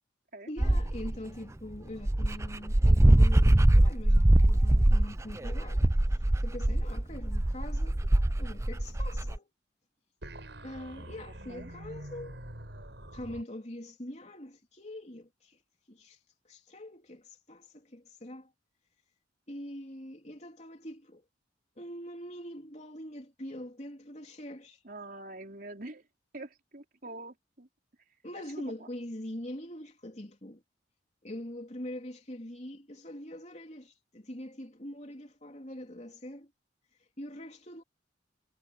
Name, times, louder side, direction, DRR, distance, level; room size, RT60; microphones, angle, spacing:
voice 1, 0.5-5.9 6.4-8.0 8.4-9.5 10.6-12.4 13.1-15.6 15.9-16.2 16.5-18.5 19.5-21.3 21.8-24.8 28.2-30.6 31.2-36.5 37.2-37.8, left 1 dB, 35° left, 3.5 m, -43 dB
Dog, 0.6-1.1 1.7-1.8 2.0-9.4, right 1 dB, 15° right, 0.5 m, -23 dB
sound 1, 10.2-13.4, right 1 dB, 65° right, 5.9 m, -45 dB
voice 2, 11.2-11.7 24.8-26.0 26.3-27.7 28.4-28.9, right 2 dB, 50° right, 4.1 m, -45 dB
head